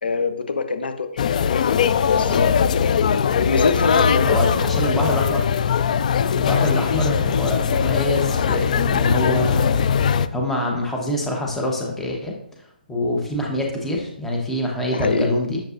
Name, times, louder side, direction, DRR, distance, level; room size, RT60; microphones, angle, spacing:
voice 1, 0.0-1.2 2.1-2.3 3.3-4.6 6.6-6.8 14.9-15.3, left 4 dB, 80° left, 8 dB, 0.8 m, -23 dB
sound 1, 1.2-10.3, left 7 dB, 50° left, 0.3 m, -20 dB
voice 2, 4.2-5.5 6.3-9.9 10.3-12.3 12.6-15.6, left 1 dB, 5° left, -1 dB, 1.0 m, -25 dB
7.1 x 5.2 x 2.6 m, 0.75 s
hypercardioid pair, 150°, 5 cm